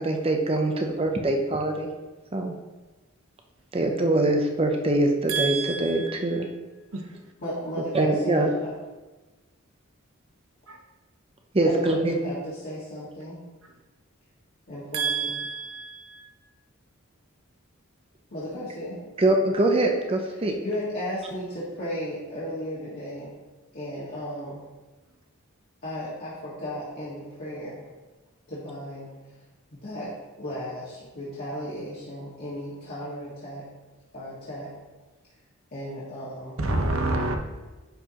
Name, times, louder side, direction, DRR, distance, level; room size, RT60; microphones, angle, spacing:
voice 1, 0.0-1.9 2.3-2.5 3.7-6.5 7.9-8.5 11.5-12.1 19.2-20.6, right 2 dB, 30° right, 0.6 m, -23 dB
voice 2, 5.3-6.5 6.9-7.0 10.7-10.8 14.9-16.2 36.6-37.3, right 3 dB, 80° right, 0.9 m, -28 dB
voice 3, 7.4-8.7 11.6-13.4 14.7-15.3 18.3-19.0 20.6-23.3 23.7-24.6 25.8-27.8 28.5-29.1 29.7-30.1 30.4-33.6 34.1-34.7 35.7-36.6, equal, 45° left, 1.7 m, -34 dB
10.5 x 4.7 x 2.9 m
head